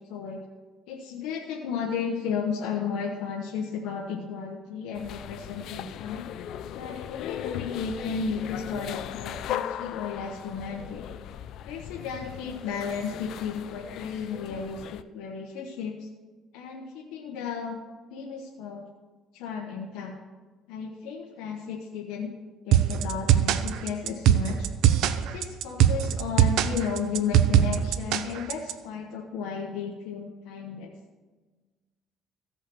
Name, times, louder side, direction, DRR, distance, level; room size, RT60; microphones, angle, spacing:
voice 1, 0.1-0.4 0.9-6.3 6.7-11.1 11.7-16.1 16.5-17.8 18.1-18.9 19.3-20.1 20.7-22.3 22.6-24.7 25.1-30.9, left 6 dB, 85° left, 0 dB, 1.1 m, -34 dB
sound 1, 4.9-15.0, left 10 dB, 65° left, 0.5 m, -38 dB
sound 2, 22.7-28.7, right 10 dB, 75° right, 0.6 m, -21 dB
15.0 x 5.7 x 6.2 m, 1.3 s
cardioid pair, 105°, 0 cm